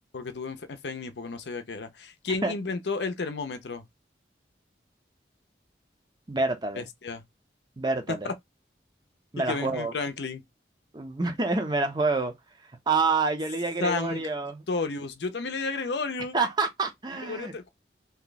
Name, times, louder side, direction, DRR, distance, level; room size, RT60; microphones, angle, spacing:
voice 1, 0.1-3.8 6.8-7.2 8.2-8.3 9.5-10.4 13.8-14.2 14.7-16.4 17.2-17.7, left 3 dB, 75° left, 0.6 m, -32 dB
voice 2, 6.3-6.9 7.8-8.3 9.3-9.9 10.9-12.3 12.9-14.6 16.3-17.5, right 3 dB, 25° right, 0.5 m, -27 dB
2.8 x 2.3 x 3.9 m
head